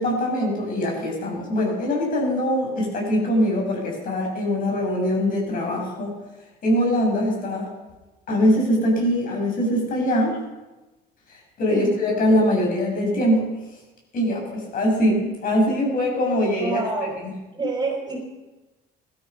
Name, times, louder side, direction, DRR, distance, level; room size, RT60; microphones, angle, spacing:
voice 1, 0.0-6.1 6.6-7.7 8.3-10.4 11.3-13.5 14.1-16.8 17.2-17.3, equal, 55° left, -1 dB, 7.4 m, -22 dB
voice 2, 16.6-17.2 17.5-18.2, right 3 dB, 25° right, 0 dB, 5.0 m, -27 dB
17.0 x 12.5 x 5.6 m, 1.1 s
cardioid pair, 110°, 17 cm